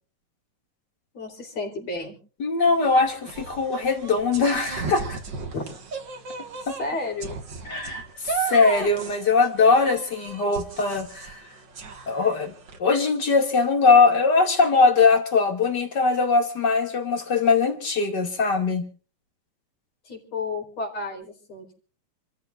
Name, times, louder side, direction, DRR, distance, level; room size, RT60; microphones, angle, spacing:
voice 1, 1.1-2.2 5.5-5.8 6.8-7.4 20.0-21.8, left 3 dB, 50° left, 0 dB, 5.0 m, -32 dB
voice 2, 2.4-5.2 6.7-6.8 7.7-11.4 12.1-18.9, left 4 dB, 35° left, 4 dB, 2.5 m, -21 dB
sound 1, 2.6-12.8, right 5 dB, 40° right, 1.8 m, -36 dB
28.5 x 14.5 x 2.5 m, 0.39 s
omnidirectional pair, 4.1 m